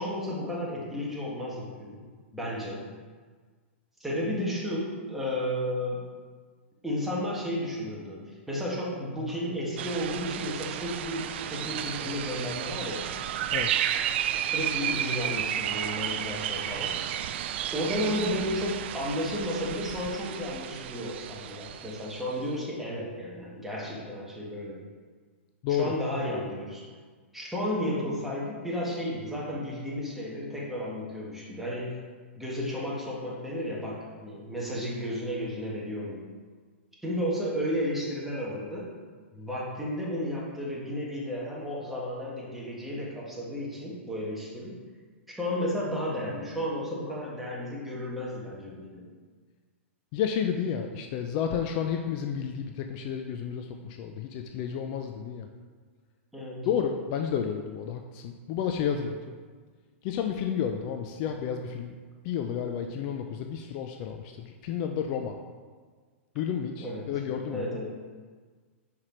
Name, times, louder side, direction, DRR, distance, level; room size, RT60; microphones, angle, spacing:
voice 1, 0.0-2.0 2.3-2.8 4.0-6.0 6.8-13.1 14.5-17.0 17.7-24.8 25.8-26.8 27.3-32.0 32.4-36.2 37.0-38.9 39.3-44.8 45.3-49.1 56.3-56.7 66.8-67.1 67.4-67.9, equal, 5° right, -5 dB, 1.6 m, -33 dB
sound 1, 9.8-22.3, right 10 dB, 60° right, 0.4 m, -32 dB
voice 2, 50.1-55.5 56.7-59.4 60.0-61.9 62.2-65.4 66.3-67.7, left 8 dB, 45° left, 4 dB, 0.5 m, -31 dB
5.7 x 4.9 x 4.4 m, 1.5 s
hypercardioid pair, 125°, 7 cm